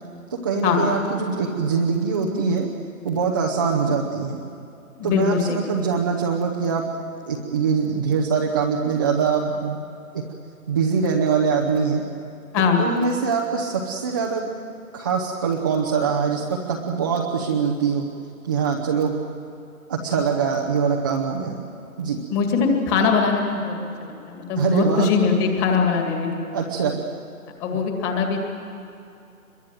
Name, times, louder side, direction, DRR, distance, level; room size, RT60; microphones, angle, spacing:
voice 1, 0.3-2.7 3.0-4.4 5.0-6.9 7.3-9.8 10.1-10.2 10.7-12.0 12.8-14.5 14.9-18.0 18.4-19.1 19.9-21.6 22.0-22.2 24.6-25.1 26.5-27.0 27.7-27.8, right 5 dB, 15° right, -3 dB, 0.7 m, -23 dB
voice 2, 4.9-5.6 12.5-12.8 22.3-26.3 27.6-28.4, left 5 dB, 15° left, 3 dB, 2.3 m, -21 dB
26.0 x 22.5 x 7.6 m, 2.7 s
figure-of-eight pair, 150°, 45 cm